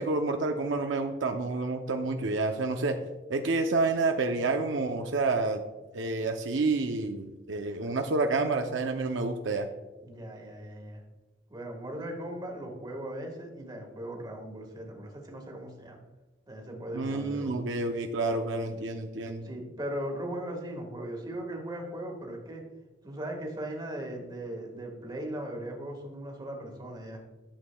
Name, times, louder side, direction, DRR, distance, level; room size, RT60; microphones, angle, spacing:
voice 1, 0.0-3.0 3.3-5.6 5.9-9.7 16.9-19.5, right 3 dB, 75° right, 5 dB, 0.6 m, -29 dB
voice 2, 10.0-11.0 11.5-16.0 16.5-17.6 19.4-22.6 23.0-27.2, right 1 dB, 25° right, 2 dB, 1.5 m, -38 dB
11.5 x 7.2 x 2.2 m, 1.1 s
head